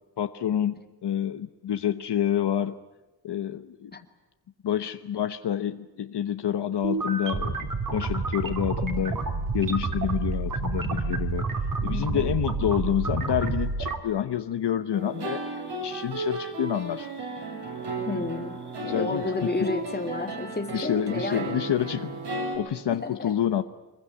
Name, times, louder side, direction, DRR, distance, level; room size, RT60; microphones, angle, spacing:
voice 1, 0.2-2.7 3.2-3.9 4.6-9.2 9.5-11.5 11.8-15.4 15.8-17.1 18.8-19.3 20.7-22.2 22.5-23.6, left 10 dB, 70° left, 9 dB, 1.0 m, -28 dB
sound 1, 6.8-14.0, right 3 dB, 50° right, 3.4 m, -29 dB
voice 2, 11.7-12.4 18.1-21.6 22.9-23.3, left 2 dB, 20° left, 4 dB, 2.5 m, -31 dB
sound 2, 14.9-22.6, right 2 dB, 70° right, 7.5 m, -34 dB
24.5 x 22.0 x 9.8 m, 1.1 s
wide cardioid pair, 135°, 43 cm